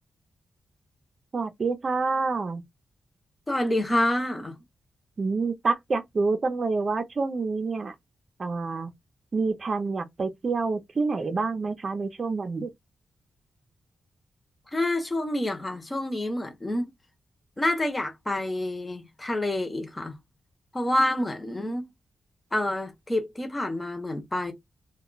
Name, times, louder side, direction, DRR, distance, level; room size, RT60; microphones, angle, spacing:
voice 1, 1.3-2.6 5.2-7.9 8.4-8.9 9.3-12.7, right 4 dB, 45° right, 0.6 m, -27 dB
voice 2, 3.5-4.6 14.7-16.9 17.6-20.2 20.7-21.9 22.5-24.5, left 1 dB, 20° left, 0.9 m, -28 dB
2.3 x 2.1 x 3.8 m
cardioid pair, 100°, 0 cm